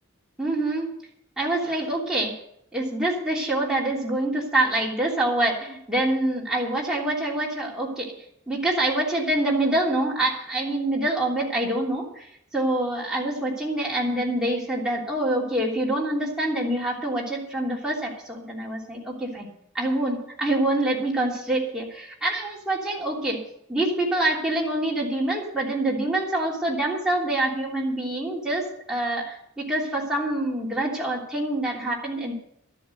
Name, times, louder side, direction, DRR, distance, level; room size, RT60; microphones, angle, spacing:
voice 1, 0.4-0.9 1.4-2.3 2.7-8.1 8.5-12.3 12.5-19.5 19.7-23.4 23.7-29.2 29.6-32.3, right 1 dB, 5° right, -4 dB, 3.0 m, -26 dB
12.5 x 8.1 x 7.9 m, 0.73 s
head